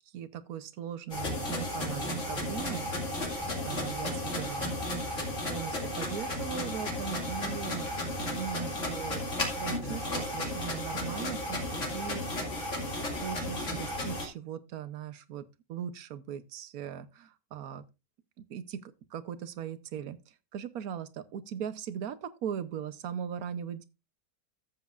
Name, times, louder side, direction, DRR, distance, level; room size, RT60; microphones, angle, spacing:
voice 1, 0.1-2.9 3.6-4.7 5.4-7.9 8.2-9.2 9.5-12.5 13.0-17.8 18.4-23.8, right 9 dB, 75° right, 1.3 m, -39 dB
sound 1, 1.1-14.3, left 1 dB, 55° left, 2.7 m, -34 dB
14.0 x 7.7 x 2.4 m
omnidirectional pair, 1.6 m